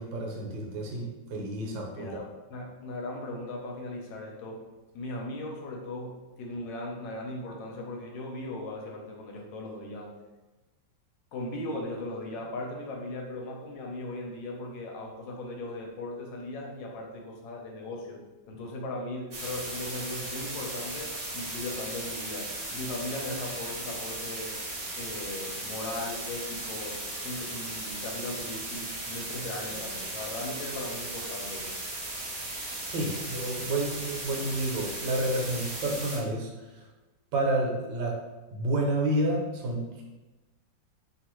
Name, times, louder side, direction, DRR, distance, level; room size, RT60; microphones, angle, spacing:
voice 1, 0.0-2.2 32.9-36.5 36.8-36.9 37.3-38.2 38.5-40.0, right 1 dB, 75° right, 0 dB, 1.3 m, -30 dB
voice 2, 1.9-4.6 4.9-10.1 11.3-24.6 25.0-31.7, left 2 dB, 75° left, 0 dB, 1.3 m, -38 dB
sound 1, 19.3-36.2, right 2 dB, 55° right, 0.9 m, -37 dB
3.1 x 2.4 x 2.9 m, 1.1 s
omnidirectional pair, 2.1 m